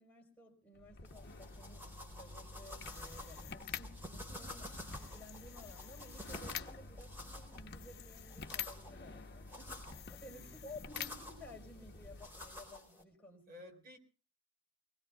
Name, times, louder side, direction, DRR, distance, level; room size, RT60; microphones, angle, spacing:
voice 1, 0.0-13.7, left 1 dB, 10° left, 4.6 m, -55 dB
sound 1, 0.8-12.7, left 6 dB, 50° left, 1.1 m, -48 dB
sound 2, 1.1-13.0, left 1 dB, 10° right, 4.3 m, -51 dB
voice 2, 10.3-10.8 13.5-14.0, left 2 dB, 50° right, 3.6 m, -55 dB
25.0 x 20.0 x 2.4 m
head